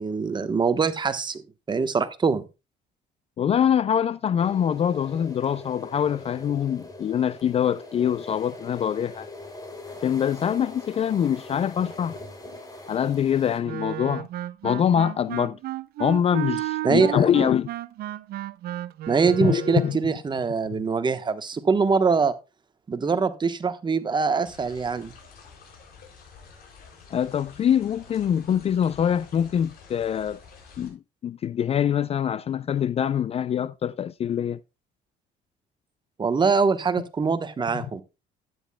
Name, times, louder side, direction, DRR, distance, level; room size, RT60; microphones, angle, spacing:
voice 1, 0.0-1.4 1.7-2.4 16.8-17.2 19.1-22.3 22.9-25.1 36.2-38.0, right 5 dB, 25° right, 1.1 m, -23 dB
voice 2, 3.4-9.3 10.0-12.2 12.9-14.3 14.6-15.6 16.0-17.7 19.4-20.0 27.1-30.4 30.8-34.6, left 9 dB, 35° left, 0.4 m, -24 dB
sound 1, 4.4-13.6, left 2 dB, 20° left, 3.0 m, -42 dB
Wind instrument woodwind instrument, 13.6-20.0, right 15 dB, 65° right, 0.6 m, -33 dB
sound 2, 24.4-30.9, left 5 dB, 65° left, 4.6 m, -49 dB
12.5 x 9.6 x 2.2 m
cardioid pair, 110°, 17 cm